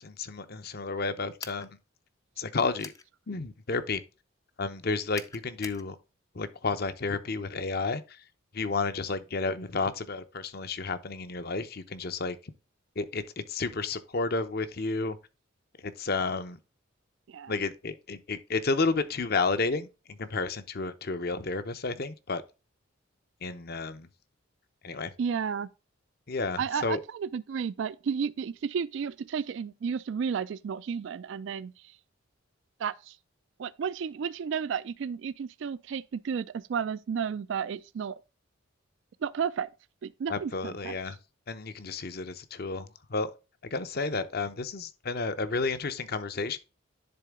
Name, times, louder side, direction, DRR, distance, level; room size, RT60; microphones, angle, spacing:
voice 1, 0.0-1.7 2.4-2.9 3.3-4.0 4.6-6.0 6.3-8.0 8.5-12.4 13.0-13.2 13.5-15.2 15.8-16.6 17.5-19.9 20.2-22.4 23.4-24.1 24.8-25.1 26.3-27.0 40.3-41.2 41.5-43.3 43.7-46.6, left 3 dB, 45° left, 0.7 m, -31 dB
sound 1, 1.4-1.7 2.8-3.0 5.1-5.8, left 4 dB, 15° left, 0.4 m, -43 dB
voice 2, 25.2-25.7 26.6-32.0 32.8-33.2 33.6-38.2 39.2-39.7 40.0-41.0, right 6 dB, 60° right, 0.3 m, -32 dB
10.5 x 3.8 x 3.6 m
head